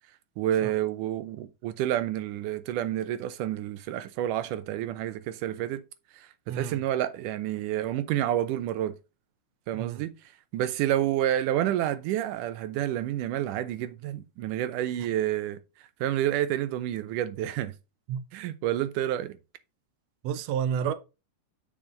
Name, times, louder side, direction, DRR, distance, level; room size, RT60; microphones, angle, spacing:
voice 1, 0.4-5.8 6.1-8.9 9.7-10.1 10.5-15.6 16.0-17.7 18.3-19.4, right 12 dB, 85° right, 2.3 m, -29 dB
voice 2, 6.5-6.8 9.8-10.0 18.1-18.2 20.2-20.9, right 8 dB, 70° right, 1.7 m, -30 dB
7.3 x 6.6 x 3.8 m
omnidirectional pair, 3.6 m